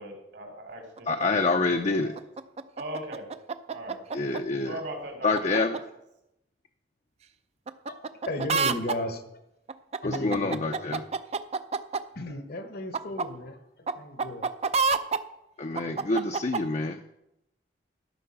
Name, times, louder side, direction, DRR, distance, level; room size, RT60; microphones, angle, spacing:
voice 1, 0.0-2.1 2.8-3.3 3.7-4.0 4.6-5.8, right 1 dB, 75° right, 2 dB, 2.9 m, -39 dB
sound 1, 1.0-1.2 2.2-4.4 5.3-5.8 7.7-8.9 9.7-12.0 12.9-13.3 13.9-14.0 14.2-15.2 15.7-16.6, right 4 dB, 40° right, 0.5 m, -28 dB
voice 2, 1.1-2.1 4.1-4.8 5.2-5.8 10.0-11.0 15.6-17.1, left 3 dB, 40° left, 5 dB, 0.5 m, -27 dB
voice 3, 7.9-9.4 10.0-11.0 12.1-14.5, left 1 dB, 60° left, 7 dB, 1.1 m, -35 dB
12.5 x 5.6 x 5.7 m, 0.85 s
head